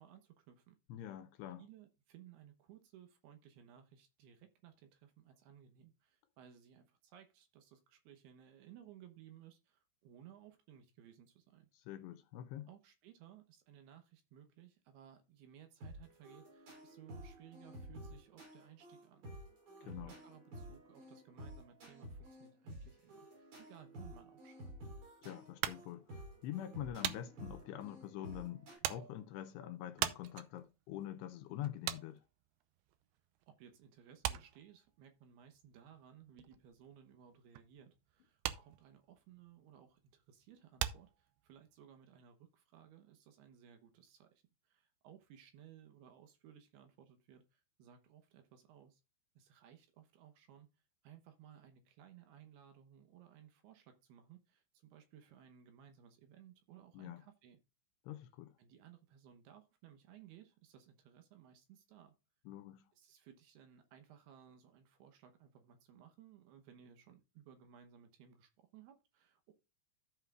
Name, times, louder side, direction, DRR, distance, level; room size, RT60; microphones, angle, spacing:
voice 1, 0.0-0.8 1.6-11.7 12.7-19.3 19.8-24.7 33.5-49.0 49.4-50.7 51.0-57.6 58.6-62.2 62.9-69.5, right 9 dB, 70° right, 2.7 m, -60 dB
voice 2, 0.9-1.6 11.7-12.7 19.9-20.1 25.2-32.2 56.9-57.2 58.1-58.5 62.5-62.9, left 12 dB, 80° left, 2.6 m, -45 dB
sound 1, 15.8-28.8, right 1 dB, 50° right, 6.6 m, -52 dB
sound 2, 25.6-33.5 33.7-41.8, right 13 dB, 90° right, 2.3 m, -43 dB
14.5 x 5.7 x 2.4 m
omnidirectional pair, 5.2 m